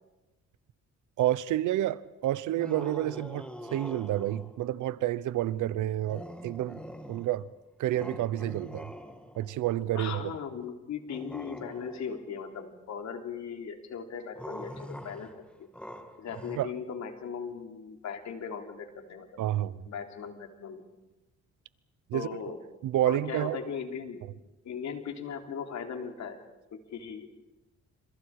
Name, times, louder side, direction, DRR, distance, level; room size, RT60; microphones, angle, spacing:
voice 1, 1.2-6.8 7.1-7.5 7.8-8.9 9.4-10.3 16.6-16.7 19.4-19.8 22.1-22.3 22.8-23.6, right 13 dB, 85° right, 1.0 m, -29 dB
sound 1, 2.5-4.6 6.1-7.5 7.9-9.6 11.1-12.2 14.3-16.6, equal, 5° left, 2.2 m, -44 dB
voice 2, 9.9-15.3 15.6-15.7 16.2-19.4 19.9-20.8 22.1-22.6 23.0-24.2 24.6-26.4 26.7-27.3, left 6 dB, 65° left, 3.4 m, -38 dB
28.5 x 27.0 x 4.9 m
cardioid pair, 90°, 30 cm